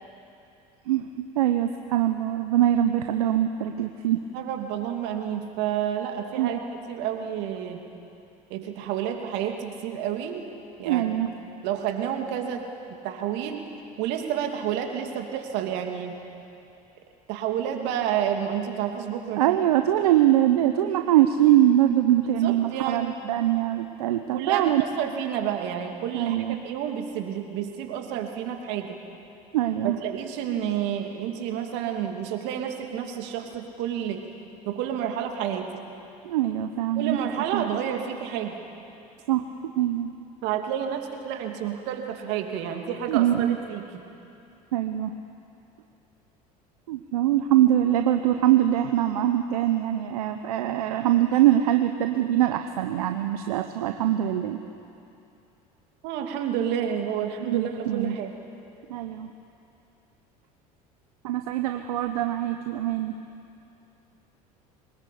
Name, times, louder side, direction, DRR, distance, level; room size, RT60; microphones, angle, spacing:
voice 1, 1.3-4.2 6.4-6.6 10.8-11.3 19.4-24.8 26.1-26.6 29.5-30.0 36.2-37.2 37.5-37.6 39.3-39.4 39.7-40.1 43.1-43.6 44.7-45.1 46.9-54.6 57.4-58.2 58.9-59.3 61.2-63.2, right 12 dB, 85° right, 7 dB, 0.9 m, -23 dB
voice 2, 4.3-6.6 6.9-7.8 8.5-10.4 10.8-11.1 11.6-12.6 13.0-13.6 14.0-16.2 17.3-19.6 22.4-23.1 24.3-26.4 26.6-29.0 29.8-34.2 34.7-35.7 37.0-38.6 40.4-44.0 56.0-58.3, right 9 dB, 65° right, 4 dB, 2.7 m, -30 dB
23.5 x 20.0 x 8.5 m, 2.7 s
hypercardioid pair, 75°, 19 cm